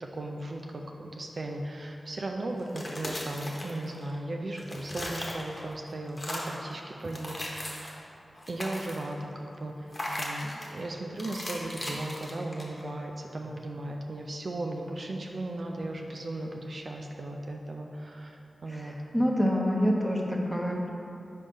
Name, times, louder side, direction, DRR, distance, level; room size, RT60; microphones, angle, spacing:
voice 1, 0.0-8.0 8.5-9.7 10.2-18.9 20.7-20.9, right 1 dB, 60° right, 1 dB, 0.4 m, -36 dB
sound 1, 2.6-4.2 4.5-5.7 6.1-6.6 7.0-8.0 8.3-9.2 9.9-10.7 11.2-12.9, left 1 dB, 35° left, 1.1 m, -38 dB
voice 2, 18.7-20.9, equal, 5° right, -2 dB, 1.0 m, -27 dB
4.9 x 4.2 x 5.1 m, 2.8 s
cardioid pair, 45°, 0 cm